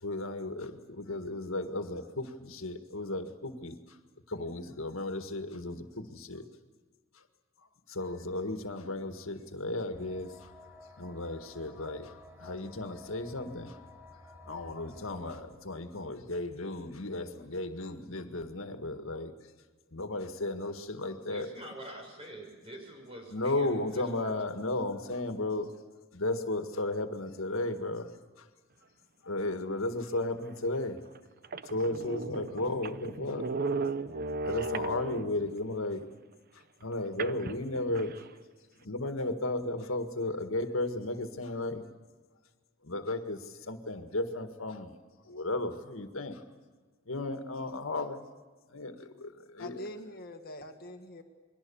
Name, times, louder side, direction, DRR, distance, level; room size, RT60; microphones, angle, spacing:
voice 1, 0.0-4.0 4.3-6.5 7.2-7.3 7.9-10.5 11.0-13.8 14.5-19.3 19.9-21.5 23.3-25.7 26.1-28.1 28.4-28.5 29.2-31.0 31.6-33.4 34.4-36.1 36.8-38.2 38.8-41.8 42.8-44.9 45.2-46.4 47.1-48.2 48.7-49.9, left 2 dB, 80° left, 7 dB, 1.8 m, -34 dB
sound 1, 9.9-15.4, left 2 dB, 10° right, 3.9 m, -52 dB
voice 2, 21.2-24.3, right 1 dB, 30° right, 3 dB, 5.9 m, -46 dB
sound 2, 30.5-30.6 31.2-31.3 31.4-35.5 37.2-38.3, right 3 dB, 45° right, 0.7 m, -36 dB
voice 3, 49.6-51.2, left 1 dB, 50° left, 4 dB, 1.8 m, -44 dB
29.0 x 22.5 x 7.1 m, 1.4 s
head